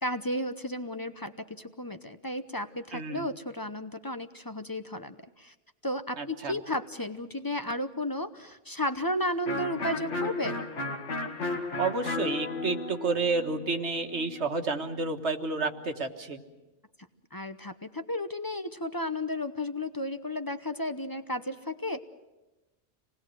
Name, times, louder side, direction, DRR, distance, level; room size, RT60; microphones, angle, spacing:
voice 1, 0.0-5.5 5.8-10.6 17.3-22.0, left 1 dB, 20° left, 9 dB, 0.8 m, -33 dB
voice 2, 2.9-3.3 6.2-6.6 11.6-16.4, right 3 dB, 70° right, 6 dB, 1.8 m, -30 dB
Electric guitar, 9.5-15.1, left 3 dB, 80° left, 2.0 m, -34 dB
27.0 x 19.5 x 7.8 m, 1.1 s
omnidirectional pair, 1.2 m